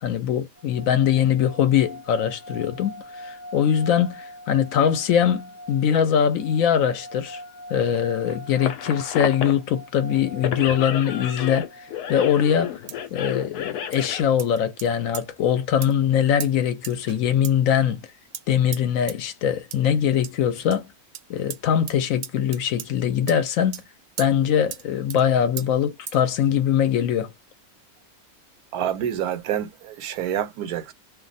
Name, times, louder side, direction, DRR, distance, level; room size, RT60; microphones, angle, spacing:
voice 1, 0.0-7.4 7.7-12.8 13.1-18.0 18.5-20.9 21.3-23.8 24.2-27.3, left 9 dB, 70° left, 0.9 m, -22 dB
sound 1, 0.6-12.4, equal, 45° left, 0.7 m, -42 dB
sound 2, 7.9-9.6 10.1-14.2, left 9 dB, 90° left, 1.1 m, -31 dB
sound 3, 12.9-13.1 13.9-14.1 14.4-14.9 15.1-15.3 15.8-15.9 16.4-16.5 16.8-17.2 17.4-17.5 18.3-18.4 18.7-18.8 19.1-19.2 19.7-19.8 20.2-20.3 20.7-20.8 21.1-21.2 21.5-21.6 21.9-22.0 22.2-22.9 23.3-23.4 23.7-23.8 24.2-24.3 24.7-24.8 25.1-25.2 25.6-25.7 26.1-26.2, right 10 dB, 70° right, 0.8 m, -36 dB
voice 2, 28.7-30.9, right 10 dB, 85° right, 1.1 m, -27 dB
2.5 x 2.2 x 3.9 m
omnidirectional pair, 1.6 m